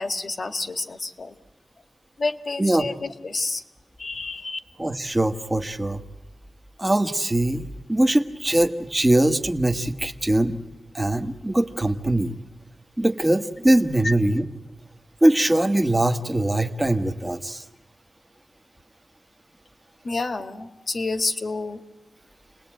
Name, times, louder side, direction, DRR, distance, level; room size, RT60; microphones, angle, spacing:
voice 1, 0.0-1.4 2.2-3.6 4.0-4.6 14.0-14.1 20.0-21.8, left 3 dB, 45° left, 9 dB, 1.5 m, -29 dB
voice 2, 4.8-6.0 6.8-10.6 10.9-12.4 13.0-14.4 15.2-17.6, right 1 dB, 15° right, 6 dB, 1.3 m, -22 dB
29.0 x 20.0 x 9.0 m, 1.1 s
wide cardioid pair, 125°, 0 cm